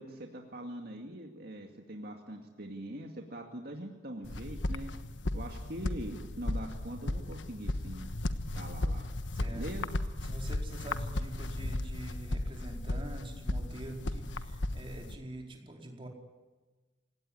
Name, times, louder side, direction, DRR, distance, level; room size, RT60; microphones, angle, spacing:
voice 1, 0.0-4.9 5.3-8.1 8.4-9.1 9.5-9.9, right 1 dB, 55° right, 2 dB, 2.3 m, -43 dB
sound 1, 4.2-15.2, left 1 dB, 85° left, 1.3 m, -35 dB
voice 2, 10.2-16.1, right 1 dB, 30° right, 1 dB, 4.6 m, -45 dB
28.5 x 17.5 x 9.9 m, 1.3 s
head